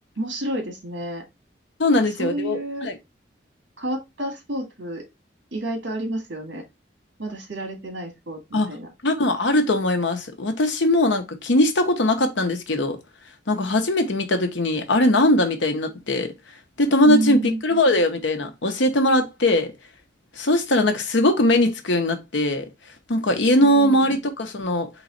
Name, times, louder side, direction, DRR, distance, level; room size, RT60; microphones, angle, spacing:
voice 1, 0.2-1.2 2.2-2.9 3.8-5.0 5.5-6.6 7.2-8.9 17.0-17.6 23.6-24.2, right 1 dB, 80° right, 2.0 m, -29 dB
voice 2, 1.8-3.0 8.5-8.7 9.0-13.0 13.5-16.3 16.8-19.7 20.4-22.6 23.1-24.9, left 1 dB, 90° left, 1.0 m, -20 dB
4.0 x 3.1 x 3.9 m
head